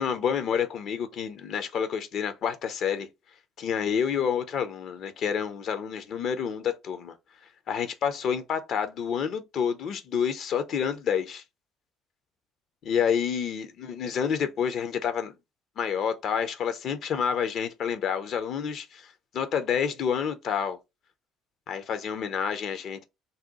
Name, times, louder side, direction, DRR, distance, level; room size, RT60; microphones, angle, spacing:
voice 1, 0.0-3.1 3.6-7.1 7.7-11.4 12.8-15.3 15.8-19.1 19.3-20.8 21.7-23.1, left 7 dB, 50° left, 0.4 m, -28 dB
2.7 x 2.1 x 3.8 m
figure-of-eight pair, 55°, 0 cm